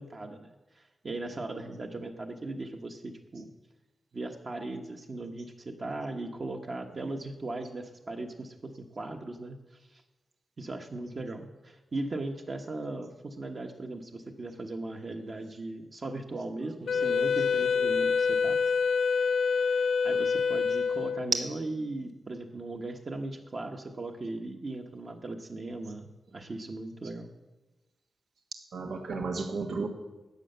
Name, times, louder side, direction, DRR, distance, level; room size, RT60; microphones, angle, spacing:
voice 1, 0.0-3.5 4.1-10.0 10.6-18.6 19.7-27.3, right 2 dB, 35° right, 2 dB, 1.0 m, -38 dB
Wind instrument woodwind instrument, 16.9-21.4, left 5 dB, 70° left, 0.5 m, -26 dB
voice 2, 16.9-17.4 17.8-17.9 20.1-20.2 28.7-29.9, right 4 dB, 90° right, 3 dB, 1.4 m, -35 dB
12.0 x 7.7 x 7.7 m, 1.1 s
wide cardioid pair, 175°, 0 cm